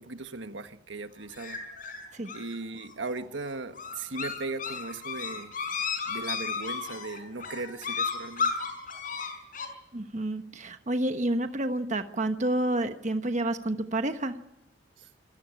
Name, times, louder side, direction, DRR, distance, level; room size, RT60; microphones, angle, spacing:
voice 1, 0.0-1.6 2.3-5.5 6.1-8.5 15.0-15.1, right 3 dB, 85° right, 1.5 m, -38 dB
sound 1, 1.3-9.7, left 5 dB, 50° left, 5.1 m, -34 dB
voice 2, 9.9-14.3, right 1 dB, 40° right, 1.2 m, -29 dB
27.0 x 16.5 x 9.7 m
head